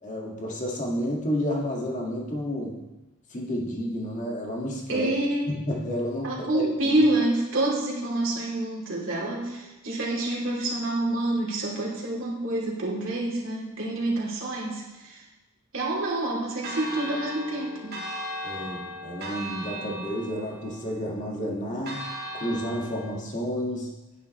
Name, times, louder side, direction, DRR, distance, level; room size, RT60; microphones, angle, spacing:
voice 1, 0.0-2.8 3.3-5.1 5.5-6.7 18.4-22.0 22.3-23.9, equal, 40° left, -1 dB, 1.9 m, -31 dB
voice 2, 4.9-5.4 6.2-15.2 15.7-17.9, right 1 dB, 70° right, -4 dB, 3.1 m, -27 dB
Church bell, 16.6-23.1, equal, 50° right, 1.8 m, -37 dB
10.5 x 9.6 x 3.2 m, 1.1 s
head